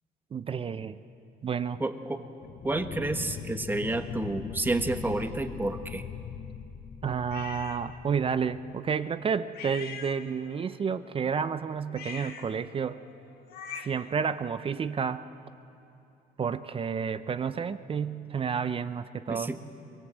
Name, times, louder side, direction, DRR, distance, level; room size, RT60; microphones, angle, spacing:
voice 1, 0.3-1.0 1.4-1.8 7.0-13.0 13.8-15.3 16.4-19.5, right 6 dB, 35° right, 12 dB, 0.6 m, -30 dB
voice 2, 1.8-2.2 2.6-6.0 19.3-19.6, right 2 dB, 10° right, 7 dB, 1.3 m, -30 dB
sound 1, 2.4-8.9, left 8 dB, 45° left, 0.9 m, -41 dB
sound 2, 7.3-7.8 9.5-10.6 11.9-14.1, left 6 dB, 70° left, 1.7 m, -43 dB
23.0 x 21.0 x 8.1 m, 2.7 s
cardioid pair, 110°, 17 cm